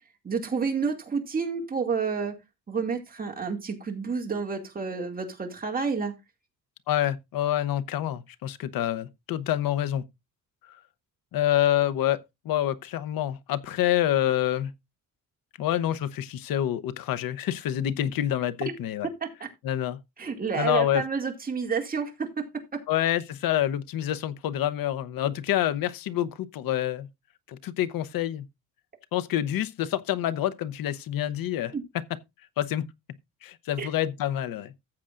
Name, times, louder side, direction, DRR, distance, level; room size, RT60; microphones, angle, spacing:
voice 1, 0.2-2.4 2.7-6.2 20.2-22.8 31.7-31.8 33.8-33.9, right 5 dB, 25° right, 2.3 m, -29 dB
voice 2, 6.9-10.0 11.3-14.7 15.6-19.1 19.6-20.0 20.6-21.0 22.9-27.1 27.5-28.5 29.1-31.7 32.6-32.9 33.4-34.7, left 12 dB, 80° left, 0.9 m, -27 dB
14.5 x 7.6 x 2.5 m
cardioid pair, 140°, 34 cm